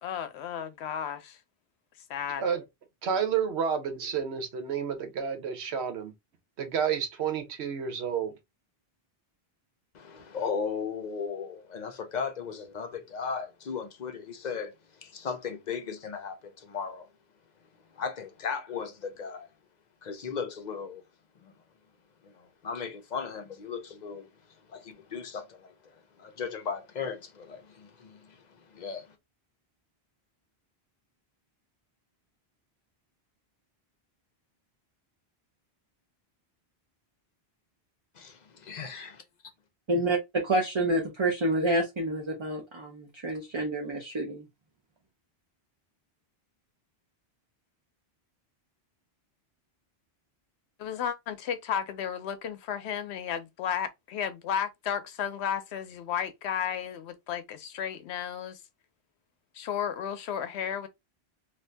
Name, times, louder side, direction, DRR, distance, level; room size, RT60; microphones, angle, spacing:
voice 1, 0.0-1.4 2.1-2.4 50.8-58.6 59.5-60.9, left 8 dB, 85° left, 0.9 m, -33 dB
voice 2, 3.0-6.1 6.6-8.4, right 7 dB, 80° right, 1.1 m, -30 dB
voice 3, 9.9-17.1 17.9-19.5 20.0-21.0 21.4-21.5 22.2-24.3 24.7-29.2 38.1-39.2, left 6 dB, 50° left, 0.6 m, -37 dB
voice 4, 39.9-44.4, right 1 dB, 35° right, 0.6 m, -28 dB
2.6 x 2.5 x 3.2 m
omnidirectional pair, 1.1 m